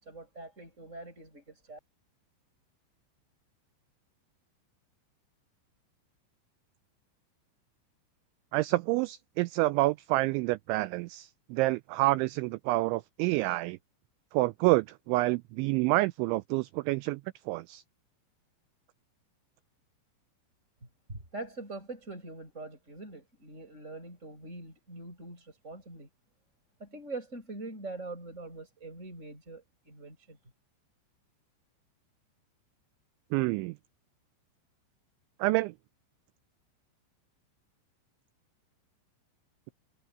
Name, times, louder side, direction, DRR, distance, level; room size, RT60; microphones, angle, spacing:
voice 1, 0.0-1.8 21.1-26.1 26.8-30.4, right 2 dB, 15° right, 6.7 m, -43 dB
voice 2, 8.5-13.8 14.3-17.2 17.5-17.8 33.3-33.7 35.4-35.7, right 20 dB, 90° right, 2.6 m, -28 dB
omnidirectional pair, 5.9 m